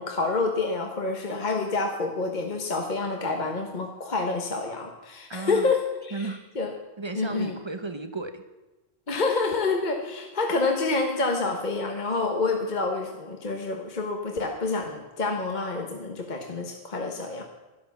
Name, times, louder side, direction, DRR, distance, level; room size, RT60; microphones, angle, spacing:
voice 1, 0.0-6.3 6.5-6.7 7.1-7.6 9.1-17.4, left 3 dB, 45° left, 3 dB, 1.3 m, -28 dB
voice 2, 5.3-5.7 6.1-6.4 7.0-8.4, right 3 dB, 30° right, 8 dB, 0.9 m, -34 dB
12.0 x 11.5 x 7.1 m, 1.1 s
omnidirectional pair, 1.1 m